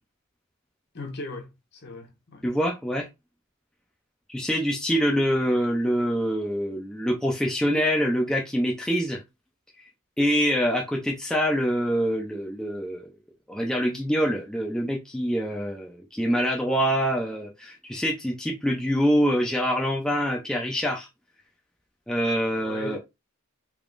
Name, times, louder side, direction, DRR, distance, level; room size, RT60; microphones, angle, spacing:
voice 1, 0.9-2.4 22.6-23.0, left 2 dB, 50° left, 0.9 m, -37 dB
voice 2, 2.4-3.1 4.3-9.2 10.2-13.1 13.5-21.1 22.1-23.0, equal, 5° left, 0.5 m, -25 dB
3.5 x 3.5 x 2.5 m
head